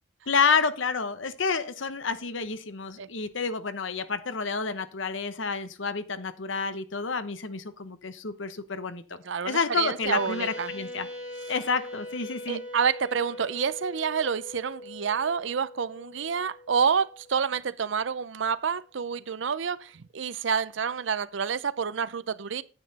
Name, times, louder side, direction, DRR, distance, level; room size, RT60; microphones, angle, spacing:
voice 1, 0.3-9.0 9.4-11.1 11.5-12.6, left 5 dB, 80° left, 1.0 m, -29 dB
voice 2, 9.2-10.7 12.5-22.6, right 6 dB, 75° right, 0.5 m, -28 dB
sound 1, 10.0-18.1, left 1 dB, 5° right, 5.8 m, -42 dB
9.6 x 8.8 x 4.1 m
head